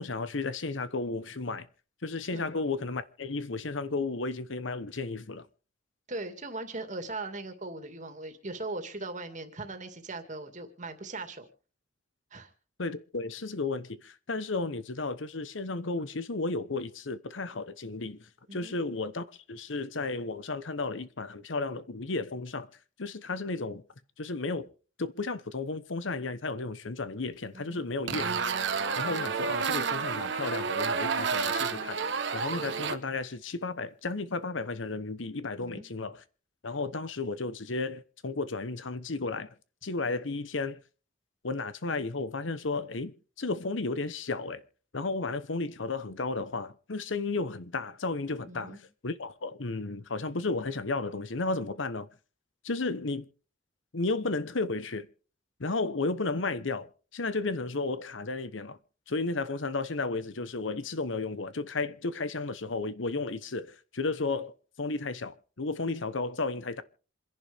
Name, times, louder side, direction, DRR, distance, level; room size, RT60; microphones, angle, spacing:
voice 1, 0.0-1.7 2.0-5.5 12.8-22.7 23.0-23.8 24.2-24.7 25.0-28.2 29.0-36.2 36.6-39.5 39.8-40.8 41.4-44.6 44.9-52.1 52.6-53.3 53.9-55.1 55.6-58.8 59.1-66.8, left 3 dB, 80° left, 1.0 m, -33 dB
voice 2, 6.1-11.5 12.3-12.5 18.5-18.8 27.5-27.8 35.6-35.9 48.5-48.8, right 2 dB, 40° right, 2.3 m, -39 dB
sound 1, 28.1-33.0, right 5 dB, 65° right, 1.2 m, -30 dB
27.5 x 11.0 x 3.5 m
head